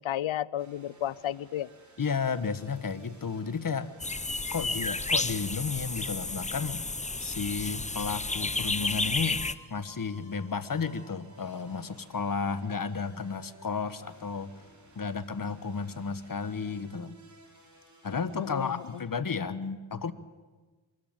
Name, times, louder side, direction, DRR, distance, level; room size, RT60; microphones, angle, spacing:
voice 1, 0.0-1.7 18.4-19.1, left 12 dB, 75° left, 21 dB, 0.7 m, -33 dB
sound 1, 0.6-19.0, right 2 dB, 35° right, 4.4 m, -56 dB
voice 2, 2.0-3.9 4.5-6.9 7.2-9.4 9.7-14.5 15.0-17.2 18.0-20.1, left 5 dB, 45° left, 13 dB, 1.3 m, -33 dB
sound 2, 4.0-9.5, left 3 dB, 15° left, 0.8 m, -31 dB
24.0 x 14.0 x 9.0 m, 1.3 s
cardioid pair, 50°, 48 cm